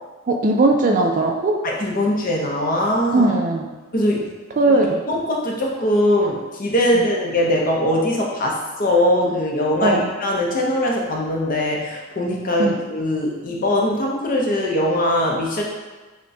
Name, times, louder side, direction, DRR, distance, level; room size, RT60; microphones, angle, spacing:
voice 1, 0.3-1.5 3.1-3.8 4.6-5.0 6.9-7.0 9.8-10.1 12.6-12.8, right 2 dB, 40° right, 2 dB, 0.3 m, -18 dB
voice 2, 1.6-3.3 3.9-4.3 5.1-15.6, left 1 dB, 40° left, -2 dB, 0.6 m, -21 dB
5.5 x 2.2 x 2.7 m, 1.3 s
head